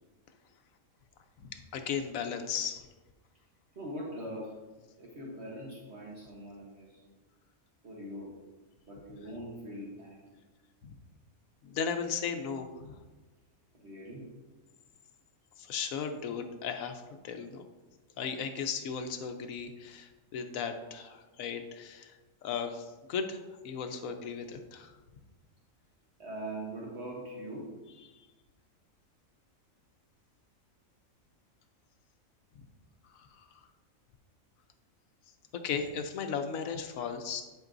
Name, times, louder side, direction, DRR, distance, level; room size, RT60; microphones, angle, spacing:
voice 1, 1.4-2.9 10.8-10.9 11.6-12.9 15.6-17.6 18.2-22.1 22.4-24.9 28.1-28.3 33.1-33.4 35.6-37.4, left 6 dB, 85° left, 6 dB, 1.1 m, -36 dB
voice 2, 3.7-4.6 5.0-7.1 7.8-8.3 8.9-10.4 13.7-14.3 26.2-27.7, right 1 dB, 55° right, -4 dB, 1.4 m, -42 dB
10.5 x 5.3 x 2.6 m, 1.2 s
omnidirectional pair, 1.4 m